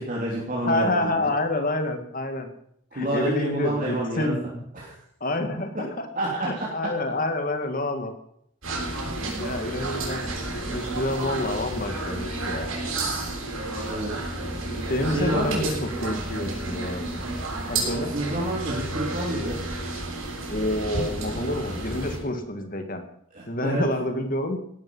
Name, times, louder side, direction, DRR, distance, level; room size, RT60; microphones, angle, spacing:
voice 1, 0.0-1.3 2.9-4.3 4.7-5.0 6.1-6.6 13.9-14.1 15.0-15.7 18.1-19.6 23.3-23.8, right 1 dB, 40° right, -4 dB, 3.3 m, -28 dB
voice 2, 0.6-2.5 2.9-4.6 5.2-6.1 6.4-8.2 9.4-10.2 10.7-12.7 14.9-17.2 17.7-18.1 20.5-23.0 23.5-24.6, left 1 dB, 40° left, 6 dB, 2.1 m, -28 dB
sound 1, 8.6-22.2, right 2 dB, 90° right, 6.9 m, -31 dB
17.5 x 12.5 x 5.6 m, 0.72 s
head